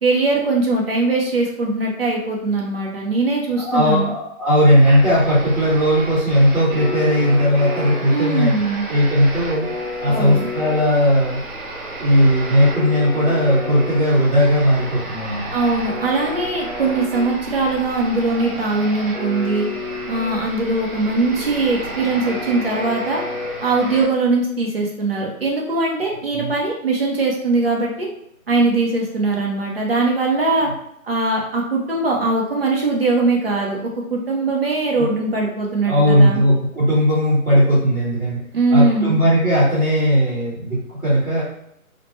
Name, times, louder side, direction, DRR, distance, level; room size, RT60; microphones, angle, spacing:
voice 1, 0.0-4.1 8.1-8.9 10.1-10.5 15.5-19.7 20.1-23.2 23.6-28.1 28.5-30.7 31.1-33.8 34.1-36.4 38.5-39.2, right 3 dB, 45° right, -2 dB, 0.6 m, -21 dB
voice 2, 3.6-8.5 8.9-9.6 10.0-11.4 12.0-15.5 26.3-26.5 35.0-35.1 35.8-38.4 38.7-41.4, equal, ahead, -18 dB, 0.9 m, -17 dB
sound 1, 4.8-24.1, left 1 dB, 25° right, 1.1 m, -31 dB
2.8 x 2.1 x 3.0 m, 0.78 s
figure-of-eight pair, 165°, 43 cm